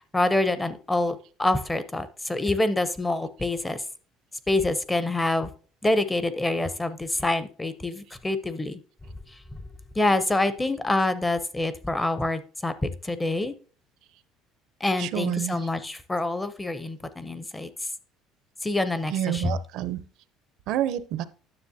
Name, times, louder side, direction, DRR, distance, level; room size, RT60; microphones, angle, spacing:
voice 1, 0.1-3.8 4.5-5.5 5.8-8.8 10.0-13.5 14.8-17.7 18.6-19.6, left 2 dB, 10° left, 13 dB, 0.6 m, -26 dB
voice 2, 15.0-15.6 19.1-20.0 20.7-21.2, right 11 dB, 65° right, 14 dB, 0.5 m, -28 dB
9.8 x 6.8 x 2.7 m, 0.39 s
cardioid pair, 150°, 0 cm